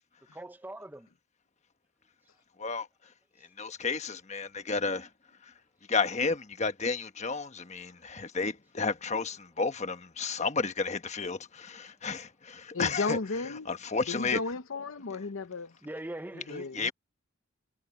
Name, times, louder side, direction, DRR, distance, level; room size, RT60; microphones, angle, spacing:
voice 1, 0.3-1.1 15.8-16.9, right 1 dB, 10° right, 0.6 m, -42 dB
voice 2, 3.6-5.1 5.9-13.2 13.7-14.4 16.7-16.9, left 4 dB, 35° left, 1.2 m, -32 dB
voice 3, 12.7-13.7 14.1-15.7 16.5-16.8, left 3 dB, 85° left, 0.8 m, -34 dB
head